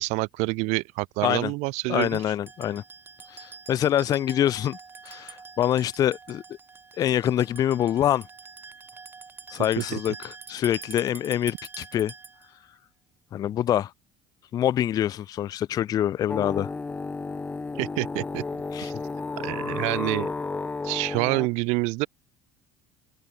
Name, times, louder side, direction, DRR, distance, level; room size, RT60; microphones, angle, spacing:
voice 1, 0.0-2.2 9.8-9.9 17.8-18.4 18.8-18.9 19.4-20.3 20.8-22.1, right 26 dB, 80° right, 1.3 m, -27 dB
voice 2, 1.9-2.8 3.3-4.8 5.0-6.4 7.0-8.3 9.5-12.1 13.3-13.9 14.5-16.7 18.7-18.9, left 11 dB, 35° left, 0.3 m, -25 dB
sound 1, 1.9-12.5, right 5 dB, 20° right, 1.0 m, -45 dB
sound 2, 16.3-21.5, left 3 dB, 15° left, 0.7 m, -32 dB
open air
cardioid pair, 140°, 12 cm